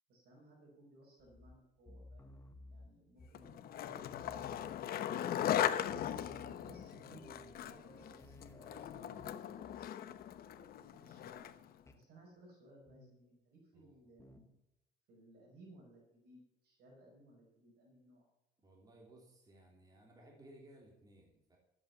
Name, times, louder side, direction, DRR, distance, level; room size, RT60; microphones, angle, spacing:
voice 1, 0.1-2.4 2.7-5.3 6.1-10.2 10.9-11.5 11.9-14.5 15.1-18.2, right 1 dB, 70° right, -2 dB, 5.4 m, -61 dB
sound 1, 1.2-3.6 3.9-5.2 5.5-5.6 5.8-9.9 10.2-10.5 11.9-12.1 12.9-13.3 14.2-14.6, left 1 dB, 15° left, 1.3 m, -57 dB
Skateboard, 3.3-11.7, left 10 dB, 65° left, 0.9 m, -39 dB
voice 2, 18.6-21.6, right 1 dB, 20° right, -1 dB, 3.2 m, -60 dB
12.5 x 8.7 x 6.9 m, 0.87 s
cardioid pair, 110°, 17 cm